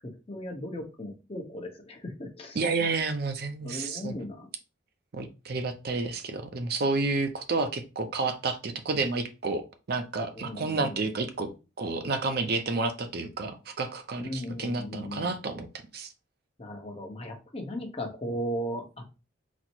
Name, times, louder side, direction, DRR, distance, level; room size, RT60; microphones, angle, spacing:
voice 1, 0.3-2.6 3.6-4.5 10.3-11.0 14.2-15.3 16.6-19.1, equal, 30° left, 3 dB, 0.8 m, -37 dB
voice 2, 2.6-4.1 5.1-9.6 9.9-11.5 11.8-15.7 15.9-16.1, right 3 dB, 55° right, 7 dB, 0.5 m, -30 dB
4.1 x 2.0 x 4.4 m, 0.30 s
head